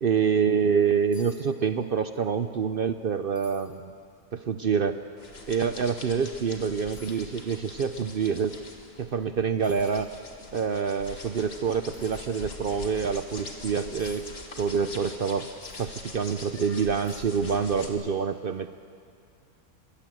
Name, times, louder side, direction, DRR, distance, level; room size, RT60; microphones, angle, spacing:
voice 1, 0.0-3.9 4.3-5.0 5.5-8.6 9.0-10.1 10.5-14.3 14.6-15.5 15.8-18.7, right 6 dB, 60° right, 10 dB, 0.6 m, -26 dB
sound 1, 1.1-1.4 1.7-2.2 2.6-2.7 3.3-3.8 4.4-4.5 6.0-6.1 6.9-7.2 9.1-9.2 9.6-10.1 11.9-12.2 14.0-14.2 15.6-15.9 16.5-16.6 17.0-17.4 17.7-17.9, left 4 dB, 15° left, 3.4 m, -53 dB
sound 2, 5.2-17.9, left 2 dB, 45° left, 1.9 m, -43 dB
22.5 x 17.0 x 7.8 m, 2.3 s
omnidirectional pair, 1.5 m